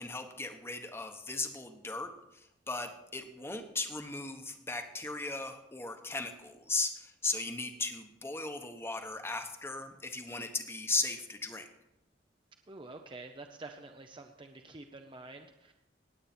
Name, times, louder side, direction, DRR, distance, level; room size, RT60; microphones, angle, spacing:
voice 1, 0.0-11.7, left 3 dB, 15° left, 6 dB, 1.1 m, -37 dB
voice 2, 12.7-15.7, right 2 dB, 30° right, 4 dB, 0.7 m, -48 dB
18.5 x 8.5 x 4.4 m, 0.88 s
head